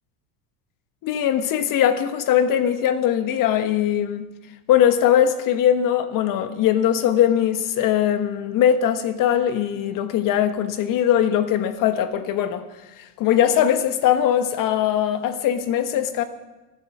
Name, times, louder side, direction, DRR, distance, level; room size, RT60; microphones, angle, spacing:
voice 1, 1.0-4.3 4.7-12.6 13.0-16.2, left 10 dB, 50° left, 1.4 m, -20 dB
23.5 x 8.3 x 6.1 m
supercardioid pair, 115°, 41 cm